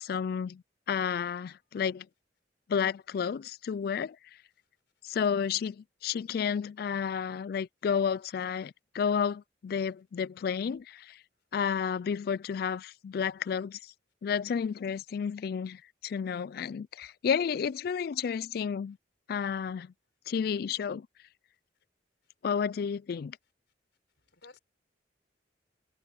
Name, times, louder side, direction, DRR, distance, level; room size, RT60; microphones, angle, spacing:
voice 1, 0.0-2.1 2.7-4.2 5.0-11.2 11.5-13.9 14.2-19.0 19.3-19.9 20.3-21.1 22.4-23.4, left 7 dB, 55° left, 0.3 m, -31 dB
voice 2, 24.3-24.6, left 3 dB, 70° left, 4.3 m, -56 dB
head